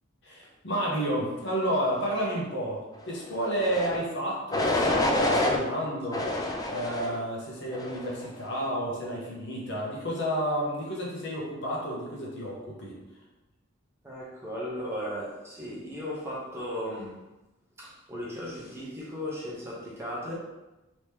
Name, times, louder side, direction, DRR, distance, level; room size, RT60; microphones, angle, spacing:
voice 1, 0.2-6.2 6.7-13.0, equal, 60° left, -4 dB, 1.0 m, -31 dB
sound 1, 3.6-4.0 4.5-5.6 6.1-7.2 7.7-8.2, left 1 dB, 20° left, 0.3 m, -27 dB
voice 2, 14.0-17.2 17.8-20.4, equal, 15° right, -6 dB, 0.8 m, -36 dB
3.0 x 3.0 x 3.4 m, 1.0 s
head